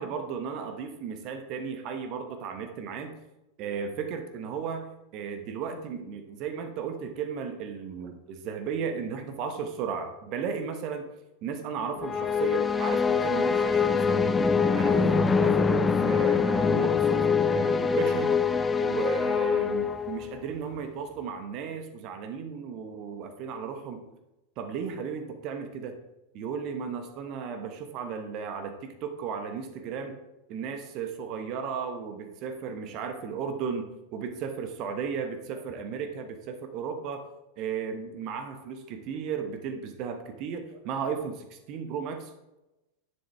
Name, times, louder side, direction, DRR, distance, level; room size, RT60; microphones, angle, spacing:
voice 1, 0.0-3.1 3.6-4.9 5.1-11.1 11.4-14.3 14.7-18.4 18.8-24.1 24.6-26.0 26.3-30.2 30.5-37.2 37.6-42.3, right 6 dB, 40° right, 7 dB, 1.0 m, -35 dB
sound 1, 12.0-20.4, left 5 dB, 15° left, 0.5 m, -24 dB
10.5 x 7.5 x 3.4 m, 0.97 s
figure-of-eight pair, 90°, 0 cm